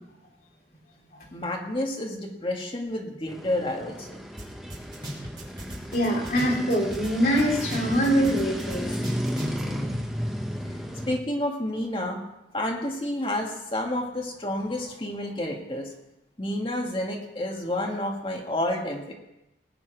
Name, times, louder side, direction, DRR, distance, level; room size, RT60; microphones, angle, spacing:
voice 1, 1.3-4.1 9.6-10.0 11.1-12.2 12.5-15.9 16.4-19.1, left 1 dB, 30° left, 1 dB, 1.8 m, -30 dB
sound 1, 3.3-11.2, equal, ahead, 1.0 m, -33 dB
sound 2, 4.4-4.5 4.7-7.1 7.4-9.6, equal, 25° right, 2.7 m, -37 dB
voice 2, 5.9-8.9, equal, 50° left, -3 dB, 3.3 m, -24 dB
19.5 x 8.4 x 4.6 m, 0.92 s
head